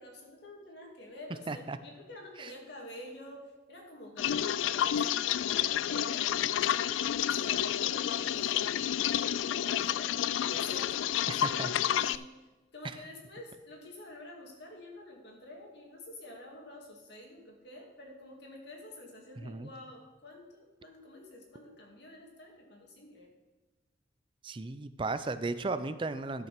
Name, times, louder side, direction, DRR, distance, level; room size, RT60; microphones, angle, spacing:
voice 1, 0.0-3.4 3.7-8.7 9.0-10.1 10.5-12.3 12.7-23.3, left 1 dB, 60° left, 0 dB, 2.2 m, -49 dB
voice 2, 1.5-1.8 2.4-2.5 11.3-11.7 19.4-19.7 24.4-26.5, right 3 dB, 25° right, 12 dB, 0.4 m, -35 dB
sound 1, 4.2-12.2, left 10 dB, 90° left, 0.3 m, -30 dB
12.5 x 5.7 x 5.9 m, 1.2 s
head